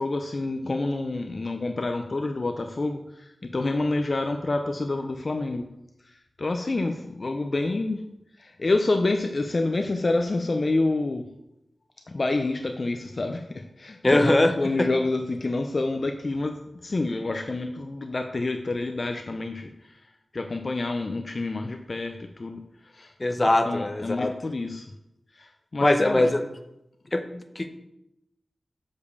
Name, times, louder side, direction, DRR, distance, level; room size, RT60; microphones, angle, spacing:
voice 1, 0.0-5.7 6.0-8.0 8.4-11.3 12.1-20.0 20.3-23.1 23.7-24.9 25.3-26.2, left 2 dB, 45° left, 5 dB, 0.6 m, -28 dB
voice 2, 14.0-14.5 14.8-14.9 23.2-24.3 25.8-26.4 27.1-27.7, left 1 dB, 25° left, 7 dB, 0.9 m, -21 dB
7.0 x 5.4 x 6.6 m, 0.85 s
wide cardioid pair, 95°, 0 cm